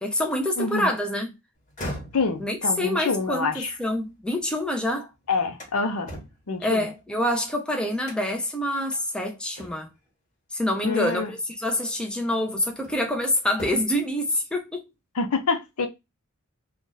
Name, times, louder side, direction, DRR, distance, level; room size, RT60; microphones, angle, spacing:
voice 1, 0.0-1.3 2.4-5.1 6.6-9.9 10.5-14.9, left 1 dB, 5° left, 0.7 m, -26 dB
voice 2, 0.6-0.9 2.1-3.7 5.3-6.1 6.5-6.9 10.8-11.3 15.2-15.9, left 4 dB, 85° left, 0.7 m, -26 dB
sound 1, 1.5-4.7 5.1-7.5 8.0-8.5 8.9-9.0 9.6-10.1 11.3-11.4 12.0-13.2 13.5-14.1, equal, 35° left, 1.3 m, -41 dB
2.6 x 2.5 x 3.9 m
head